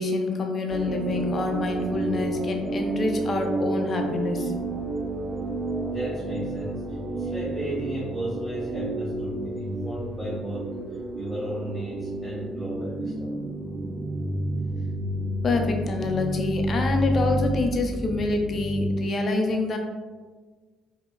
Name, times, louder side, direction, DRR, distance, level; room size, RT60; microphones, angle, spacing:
voice 1, 0.0-4.5 15.4-19.8, left 3 dB, 45° left, 3 dB, 0.5 m, -26 dB
sound 1, 0.7-18.8, right 2 dB, 40° right, 0.4 m, -30 dB
voice 2, 5.8-13.3, right 1 dB, ahead, -7 dB, 0.8 m, -35 dB
5.1 x 2.1 x 2.3 m, 1.4 s
hypercardioid pair, 50°, 0 cm